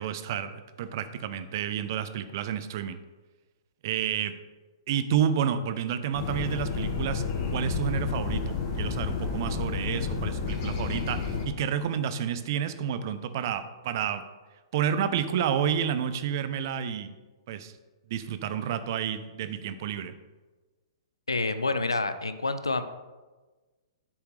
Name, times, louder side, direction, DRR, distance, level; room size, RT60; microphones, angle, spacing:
voice 1, 0.0-3.0 3.8-4.3 4.9-14.2 14.7-17.1 17.5-17.7 18.1-20.1, right 8 dB, 50° right, 11 dB, 0.8 m, -30 dB
sound 1, 6.1-11.5, left 4 dB, 35° left, 1.9 m, -30 dB
voice 2, 21.3-22.8, left 3 dB, 85° left, 11 dB, 0.7 m, -28 dB
10.0 x 7.9 x 3.4 m, 1.2 s
figure-of-eight pair, 115°, 2 cm